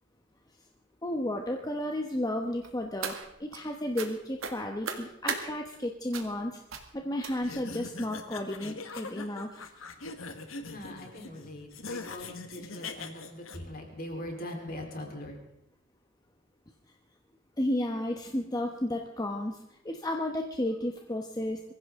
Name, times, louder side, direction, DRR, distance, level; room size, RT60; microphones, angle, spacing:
voice 1, 1.0-6.6 6.9-9.7 17.6-21.7, left 1 dB, 20° left, 3 dB, 1.0 m, -33 dB
sound 1, 2.6-3.6 4.0-4.1 4.4-5.4 6.1-6.4 6.7-6.9 7.2-7.6 8.3-8.4 8.8-9.0 9.3-9.4, right 6 dB, 85° right, 1.8 m, -37 dB
sound 2, 7.3-13.6, left 3 dB, 80° left, 1.4 m, -42 dB
voice 2, 10.7-15.4, left 1 dB, 45° left, 1 dB, 3.8 m, -41 dB
23.0 x 15.5 x 3.7 m, 0.79 s
head